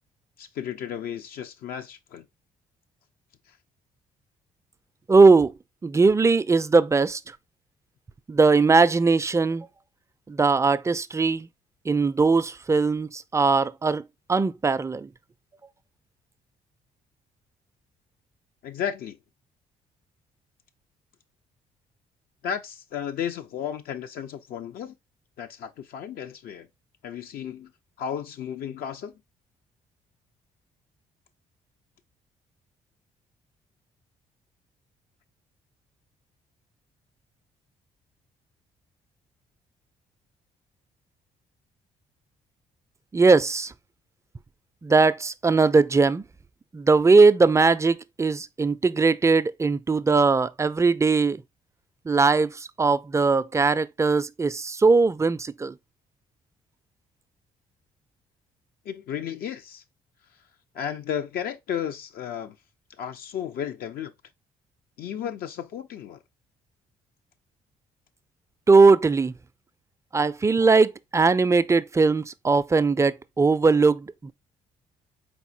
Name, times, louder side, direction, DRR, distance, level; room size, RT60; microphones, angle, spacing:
voice 1, 0.4-2.3 18.6-19.2 22.4-25.0 25.4-26.7 27.0-27.7 28.0-29.2 58.8-59.8 60.7-62.6 63.0-64.1 65.0-66.2, left 9 dB, 65° left, 0.5 m, -33 dB
voice 2, 5.1-5.5 5.8-7.2 8.3-9.7 10.3-11.5 11.9-14.0 14.3-15.1 43.1-43.7 44.8-46.2 46.7-51.4 52.1-55.7 68.7-69.3 70.1-74.3, right 4 dB, 15° right, 0.4 m, -20 dB
4.2 x 3.6 x 2.6 m
hypercardioid pair, 50°, 17 cm